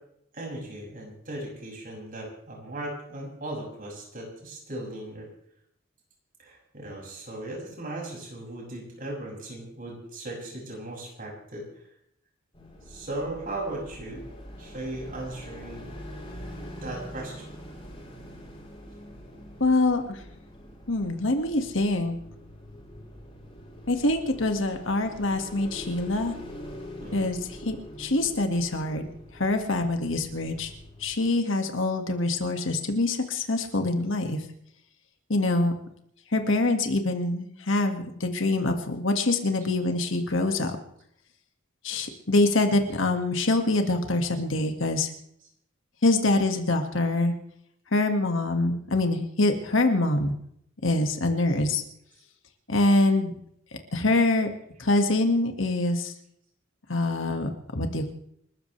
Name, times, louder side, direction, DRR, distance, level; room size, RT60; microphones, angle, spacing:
voice 1, 0.3-5.3 6.4-11.6 12.9-14.2 14.6-15.9 16.8-17.6 27.0-27.2, right 1 dB, 45° right, -1 dB, 6.8 m, -37 dB
sound 1, 12.5-31.3, equal, 25° left, 6.1 m, -44 dB
voice 2, 19.6-20.2 20.9-22.2 23.9-26.3 27.1-29.1 29.3-30.7 31.0-34.4 35.3-35.7 36.3-40.8 41.8-45.1 46.0-47.3 47.9-50.4 50.8-51.8 52.7-53.3 53.9-54.5 54.8-56.1 56.9-58.1, left 2 dB, 70° left, 5 dB, 2.0 m, -25 dB
28.5 x 14.0 x 3.4 m, 0.70 s
head